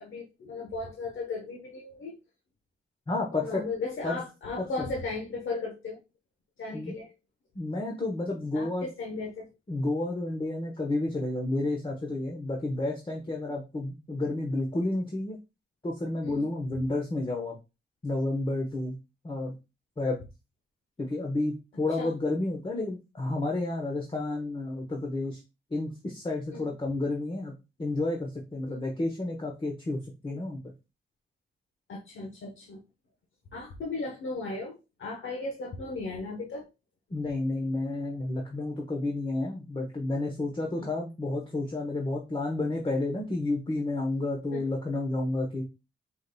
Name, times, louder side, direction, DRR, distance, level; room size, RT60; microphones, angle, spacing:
voice 1, 0.0-2.2 3.3-6.0 6.6-7.1 8.5-9.5 16.2-16.5 22.0-22.1 26.5-26.7 28.7-28.8 31.9-32.8 33.5-36.7 40.8-40.9 44.5-44.7, left 3 dB, 80° left, -1 dB, 1.0 m, -36 dB
voice 2, 3.1-3.6 4.0-4.2 6.7-6.9 7.5-8.9 9.7-15.4 15.8-17.6 18.0-19.0 19.2-19.5 20.0-20.2 21.0-25.4 25.7-27.5 27.8-30.6 37.1-45.6, left 2 dB, 25° left, 0 dB, 1.0 m, -31 dB
4.9 x 4.1 x 2.2 m, 0.26 s
cardioid pair, 80°, 20 cm